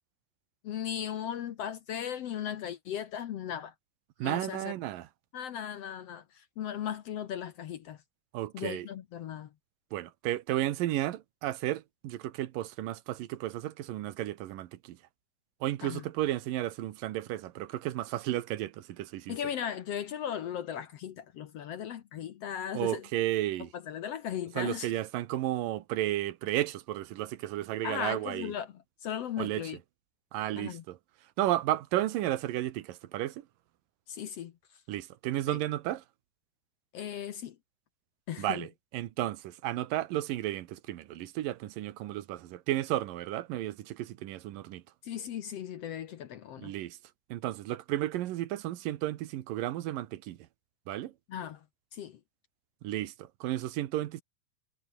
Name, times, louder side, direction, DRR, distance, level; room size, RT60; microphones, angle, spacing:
voice 1, 0.6-3.7 4.2-4.7 5.3-8.0 8.5-9.5 15.8-16.1 19.3-23.1 23.6-24.9 27.8-29.8 30.6-30.8 34.1-34.8 35.5-35.6 36.9-37.6 38.3-38.7 45.0-46.7 51.3-51.7 51.9-52.2, left 9 dB, 65° left, 1.7 m, -37 dB
voice 2, 4.2-5.1 8.3-8.9 9.9-15.0 15.6-19.4 22.7-23.7 24.6-28.5 29.4-29.7 30.3-31.0 31.4-33.4 34.9-36.0 38.4-44.8 46.6-47.0 47.3-50.4 50.9-51.1 52.8-54.2, right 14 dB, 90° right, 2.8 m, -33 dB
omnidirectional pair, 3.8 m